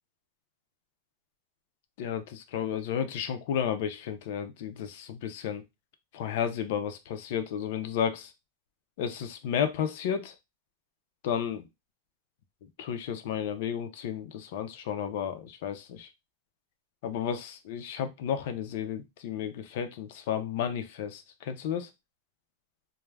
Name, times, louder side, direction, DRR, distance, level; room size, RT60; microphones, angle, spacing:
voice 1, 2.0-5.6 6.1-8.3 9.0-10.3 11.2-11.7 12.8-16.1 17.0-21.9, left 8 dB, 55° left, 0.4 m, -32 dB
2.3 x 2.0 x 3.2 m
supercardioid pair, 170°, 0 cm